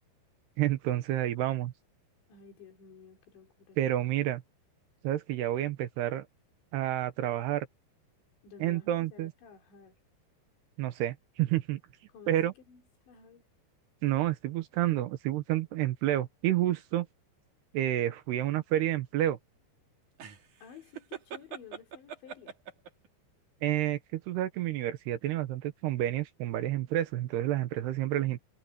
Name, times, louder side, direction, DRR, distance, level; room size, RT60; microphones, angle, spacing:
voice 1, 0.6-1.7 3.8-4.4 5.0-6.3 6.7-7.7 8.6-9.3 10.8-11.8 12.3-12.5 14.0-17.1 17.7-19.4 23.6-28.4, right 13 dB, 75° right, 3.0 m, -29 dB
voice 2, 2.3-3.8 8.4-10.0 12.1-13.5 20.6-22.6, left 6 dB, 80° left, 6.2 m, -53 dB
sound 1, 20.2-23.1, right 8 dB, 50° right, 3.4 m, -42 dB
omnidirectional pair, 5.1 m